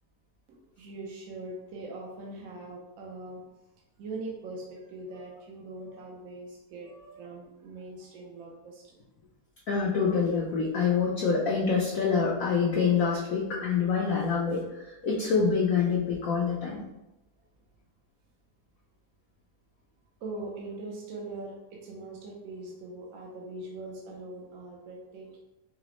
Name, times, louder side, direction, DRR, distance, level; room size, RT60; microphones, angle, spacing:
voice 1, 0.5-3.4 4.0-9.0 20.2-25.4, right 2 dB, 65° right, -2 dB, 1.0 m, -41 dB
voice 2, 9.7-16.8, left 5 dB, 65° left, -4 dB, 0.9 m, -26 dB
4.8 x 2.0 x 3.0 m, 0.95 s
omnidirectional pair, 1.9 m